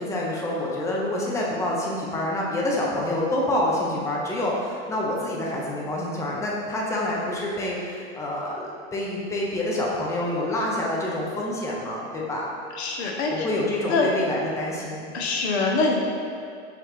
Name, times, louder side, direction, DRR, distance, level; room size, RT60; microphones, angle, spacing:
voice 1, 0.0-12.5 13.3-15.1, left 1 dB, 10° left, -4 dB, 0.6 m, -27 dB
voice 2, 12.7-13.5 13.9-14.1 15.1-16.0, left 3 dB, 70° left, 0 dB, 0.7 m, -24 dB
4.6 x 3.3 x 3.1 m, 2.3 s
hypercardioid pair, 100°, 34 cm